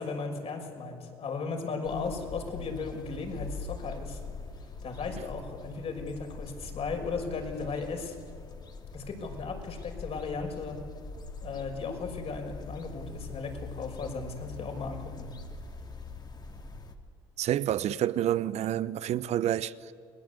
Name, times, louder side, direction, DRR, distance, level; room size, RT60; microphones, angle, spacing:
voice 1, 0.0-4.2 4.8-8.2 8.9-10.8 11.4-15.3, left 4 dB, 50° left, 6.0 m, -36 dB
sound 1, 1.8-16.9, left 3 dB, 30° left, 3.1 m, -43 dB
voice 2, 17.4-19.9, right 11 dB, 55° right, 0.8 m, -28 dB
29.5 x 21.5 x 8.3 m
hypercardioid pair, 60°, 13 cm